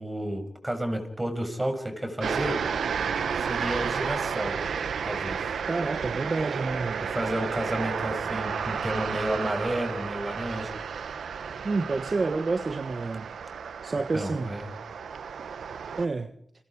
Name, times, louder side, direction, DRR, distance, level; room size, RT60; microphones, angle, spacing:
voice 1, 0.0-2.6 3.4-4.6 5.0-5.5 7.0-10.8 14.1-14.6, right 1 dB, 20° right, 6 dB, 6.7 m, -31 dB
sound 1, 2.2-16.1, right 6 dB, 85° right, 1.3 m, -32 dB
voice 2, 5.7-7.0 11.6-13.3 13.8-14.5 16.0-16.3, right 3 dB, 45° right, 10 dB, 1.4 m, -29 dB
29.5 x 23.5 x 5.0 m, 0.66 s
cardioid pair, 65°, 0 cm